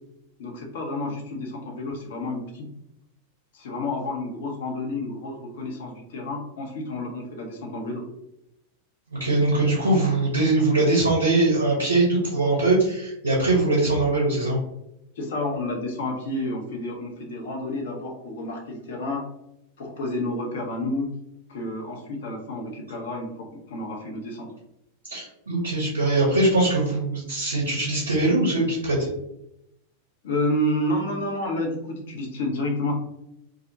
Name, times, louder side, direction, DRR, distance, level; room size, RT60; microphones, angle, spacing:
voice 1, 0.4-2.7 3.5-8.0 15.2-19.2 19.8-21.1 21.5-24.5 30.2-32.9, left 1 dB, 60° left, 1 dB, 0.6 m, -30 dB
voice 2, 9.1-14.6 25.1-29.1, right 2 dB, 75° right, -4 dB, 0.7 m, -22 dB
2.4 x 2.1 x 2.7 m, 0.82 s
figure-of-eight pair, 90°, 0 cm